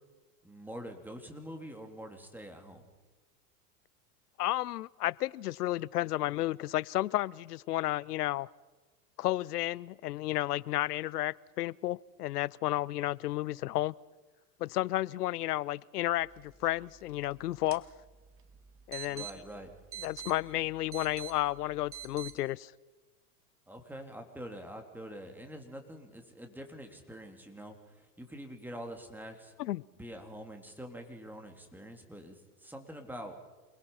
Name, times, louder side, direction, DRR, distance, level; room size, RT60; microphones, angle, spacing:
voice 1, 0.4-2.9 19.1-19.7 23.7-29.5 29.9-33.4, equal, 5° right, 4 dB, 3.3 m, -45 dB
voice 2, 4.4-8.5 9.2-13.9 14.6-17.8 18.9-19.3 20.0-22.7 29.6-29.8, left 15 dB, 85° left, 24 dB, 0.7 m, -32 dB
sound 1, 16.1-22.4, right 10 dB, 30° right, 1.8 m, -48 dB
28.5 x 20.5 x 5.7 m, 1.2 s
hypercardioid pair, 110°, 46 cm